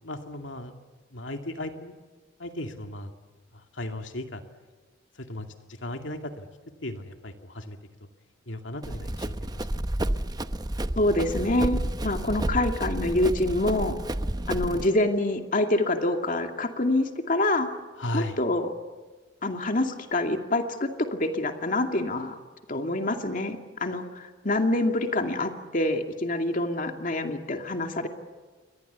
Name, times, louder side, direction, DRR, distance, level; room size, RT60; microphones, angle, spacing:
voice 1, 0.0-0.7 1.1-2.0 2.4-3.1 3.5-4.4 5.1-6.5 6.8-7.8 8.5-9.9 18.0-18.4, left 1 dB, 90° left, 5 dB, 2.4 m, -36 dB
Run, 8.8-14.9, right 1 dB, 20° right, 0.9 m, -30 dB
voice 2, 11.0-14.0 14.5-17.7 18.1-18.7 19.4-22.3 22.7-28.1, left 1 dB, 45° left, 5 dB, 2.5 m, -26 dB
29.5 x 24.0 x 8.3 m, 1.4 s
head